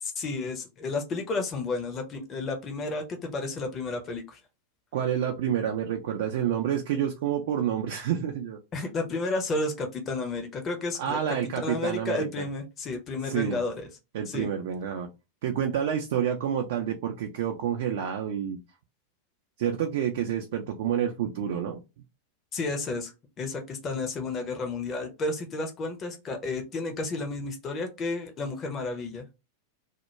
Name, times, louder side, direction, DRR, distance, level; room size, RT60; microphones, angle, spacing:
voice 1, 0.0-4.4 8.7-11.2 11.6-13.9 14.3-14.5 22.5-23.1 23.4-29.2, left 3 dB, 25° left, 4 dB, 0.6 m, -32 dB
voice 2, 4.9-8.6 11.0-12.5 13.2-13.6 14.1-15.1 15.4-18.6 19.6-21.8, right 9 dB, 55° right, 4 dB, 0.3 m, -28 dB
2.2 x 2.2 x 2.9 m, 0.26 s
figure-of-eight pair, 90°, 0 cm